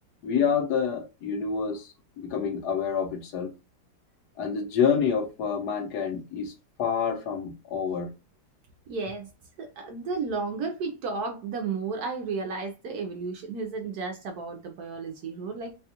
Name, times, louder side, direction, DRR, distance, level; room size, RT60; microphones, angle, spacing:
voice 1, 0.2-3.5 4.4-6.5 6.8-8.1, left 6 dB, 65° left, 1.2 m, -27 dB
voice 2, 8.9-9.3 9.6-15.8, right 4 dB, 75° right, 0.9 m, -33 dB
4.1 x 2.3 x 2.7 m
omnidirectional pair, 2.0 m